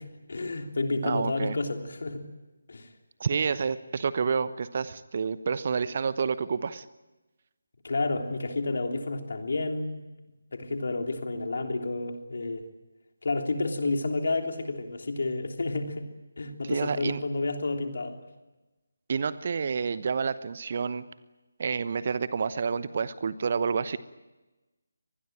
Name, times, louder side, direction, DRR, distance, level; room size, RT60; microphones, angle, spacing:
voice 1, 0.0-2.3 2.7-2.9 7.8-10.0 10.5-12.7 13.2-16.1 16.4-18.2, left 2 dB, 50° left, 4 dB, 3.3 m, -30 dB
voice 2, 1.0-1.6 3.2-6.9 16.7-17.2 19.1-21.0 21.6-24.0, right 5 dB, 40° right, 15 dB, 1.0 m, -29 dB
25.0 x 20.5 x 8.9 m, 1.1 s
figure-of-eight pair, 155°, 0 cm